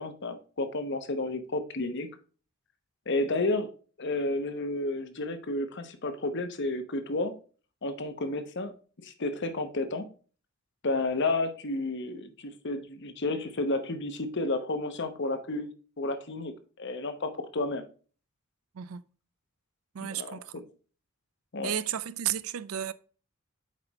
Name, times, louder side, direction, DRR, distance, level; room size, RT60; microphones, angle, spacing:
voice 1, 0.0-2.1 3.1-3.7 4.0-7.3 7.8-8.7 9.0-10.0 10.8-16.5 16.8-17.8 20.0-20.4 21.5-21.7, left 2 dB, 55° left, 0.9 m, -31 dB
voice 2, 19.9-20.6 21.6-22.9, right 10 dB, 80° right, 0.4 m, -33 dB
7.5 x 5.0 x 3.0 m
head